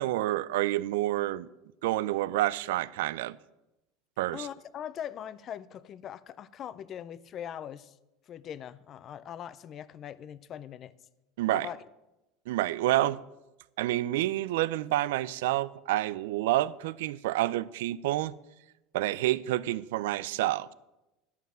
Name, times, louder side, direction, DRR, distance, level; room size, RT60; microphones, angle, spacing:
voice 1, 0.0-1.5 1.8-3.4 4.2-4.5 11.4-11.7 12.5-13.2 13.8-18.3 18.9-20.7, right 15 dB, 90° right, 0.4 m, -28 dB
voice 2, 4.3-7.9 8.3-10.9 11.5-11.8, left 9 dB, 35° left, 0.4 m, -41 dB
11.0 x 5.7 x 7.4 m
supercardioid pair, 150°, 0 cm